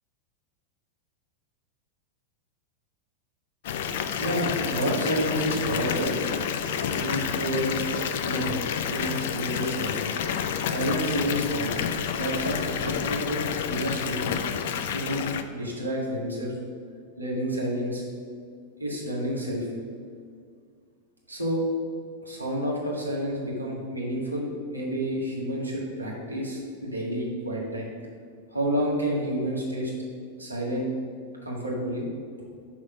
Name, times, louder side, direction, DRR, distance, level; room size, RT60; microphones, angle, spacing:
Water tap faucet / Bathtub (filling or washing) / Fill (with liquid), 3.6-15.4, left 7 dB, 55° left, 0.4 m, -29 dB
voice 1, 4.2-6.2 6.8-10.1 10.4-11.7 12.1-14.4 14.8-16.5 17.2-18.0 18.8-19.7 21.3-21.6 22.2-27.9 28.5-29.9 30.4-30.9 31.4-32.0, equal, 85° right, -4 dB, 1.7 m, -30 dB
6.2 x 4.3 x 6.1 m, 2.1 s
figure-of-eight pair, 90°, 0 cm